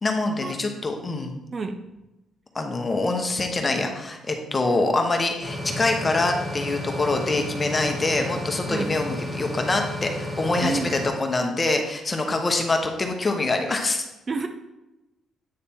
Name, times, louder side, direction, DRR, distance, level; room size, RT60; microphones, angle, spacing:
voice 1, 0.0-1.3 2.5-14.0, left 2 dB, 25° left, 3 dB, 1.0 m, -25 dB
sound 1, 5.4-11.1, left 1 dB, 15° right, 2.0 m, -32 dB
voice 2, 10.6-11.1 14.3-14.5, right 3 dB, 40° right, 6 dB, 0.6 m, -29 dB
8.5 x 3.3 x 4.3 m, 0.99 s
cardioid pair, 90°, 0 cm